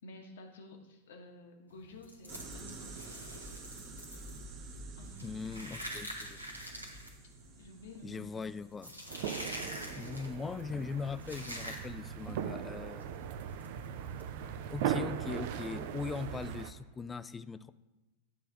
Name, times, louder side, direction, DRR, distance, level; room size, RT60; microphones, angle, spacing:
voice 1, 0.0-3.5 5.0-5.7 7.6-9.0 9.7-10.0, left 2 dB, 60° left, 4 dB, 1.1 m, -53 dB
sound 1, 1.7-12.2 12.5-12.7 13.0-13.1 13.6-14.2, equal, 85° right, 1.3 m, -45 dB
sound 2, 2.3-8.7, right 2 dB, 30° right, 1.0 m, -49 dB
voice 2, 5.2-6.4 8.0-8.9 9.9-13.1 14.7-17.7, left 5 dB, 15° left, 14 dB, 0.3 m, -40 dB
sound 3, 9.1-16.7, right 9 dB, 50° right, 0.5 m, -39 dB
9.5 x 3.4 x 5.8 m, 1.1 s
figure-of-eight pair, 90°, 0 cm